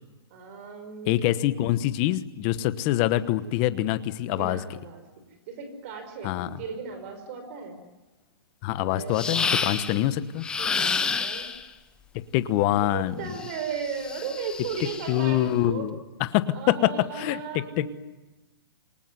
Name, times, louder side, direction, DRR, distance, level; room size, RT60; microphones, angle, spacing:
voice 1, 0.3-1.5 3.4-3.5 4.3-5.0 5.5-7.8 8.8-9.9 10.6-11.5 12.7-15.9 16.5-17.9, right 5 dB, 35° right, 8 dB, 5.4 m, -36 dB
voice 2, 1.0-4.6 6.2-6.5 8.6-10.4 12.1-13.3 15.1-16.0 16.3-17.8, left 14 dB, 25° left, 13 dB, 1.1 m, -25 dB
sound 1, 9.1-10.0 10.4-11.7 13.3-15.2, left 5 dB, 5° left, 0.9 m, -29 dB
27.5 x 20.0 x 9.7 m, 1.1 s
hypercardioid pair, 170°, 13 cm